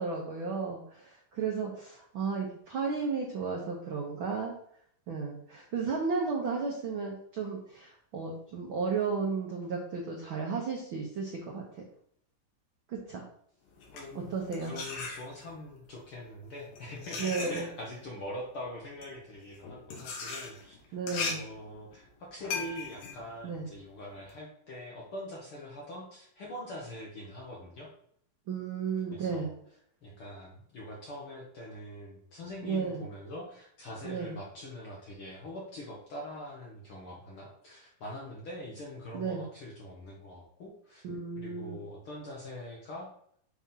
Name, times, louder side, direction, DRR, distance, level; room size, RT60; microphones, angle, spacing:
voice 1, 0.0-4.5 5.1-11.8 12.9-13.2 14.1-14.7 17.2-17.7 20.9-21.5 23.4-23.7 28.5-29.5 32.6-33.0 34.0-34.4 39.1-39.4 41.0-41.8, right 5 dB, 80° right, -1 dB, 1.1 m, -34 dB
sound 1, 13.7-15.7 16.4-24.3, left 4 dB, 85° left, 3.1 m, -39 dB
voice 2, 13.9-14.3 14.6-27.9 29.1-29.5 30.0-41.0 41.4-43.1, left 1 dB, 55° left, -3 dB, 1.5 m, -43 dB
7.1 x 3.6 x 5.6 m, 0.65 s
omnidirectional pair, 3.9 m